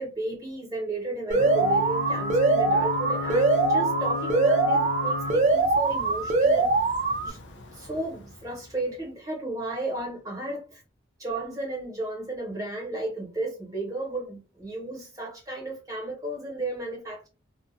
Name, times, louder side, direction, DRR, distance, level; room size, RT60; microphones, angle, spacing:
voice 1, 0.0-6.7 7.2-7.4 7.7-10.8 11.2-17.3, right 2 dB, 20° right, -2 dB, 1.1 m, -34 dB
Ocean / Boat Water vehicle / Alarm, 1.3-8.9, left 5 dB, 80° left, 0.5 m, -35 dB
Alarm, 1.3-7.3, right 3 dB, 40° right, 0.5 m, -23 dB
2.5 x 2.2 x 2.5 m, 0.32 s
head